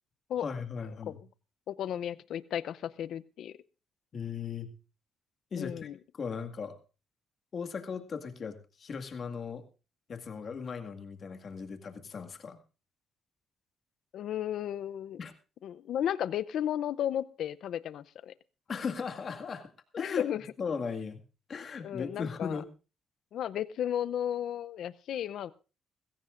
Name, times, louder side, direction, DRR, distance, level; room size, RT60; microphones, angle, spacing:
voice 1, 0.4-1.2 4.1-4.7 5.5-6.8 7.5-9.6 10.1-12.6 15.2-15.3 18.7-19.7 19.9-20.2 20.6-21.2 21.5-22.7, left 5 dB, 50° left, 6 dB, 2.0 m, -37 dB
voice 2, 1.7-3.6 5.6-5.9 14.1-15.2 15.6-18.3 20.0-20.4 21.8-22.6 23.3-25.5, left 10 dB, 75° left, 15 dB, 0.6 m, -34 dB
21.0 x 16.0 x 2.6 m, 0.33 s
cardioid pair, 90°, 0 cm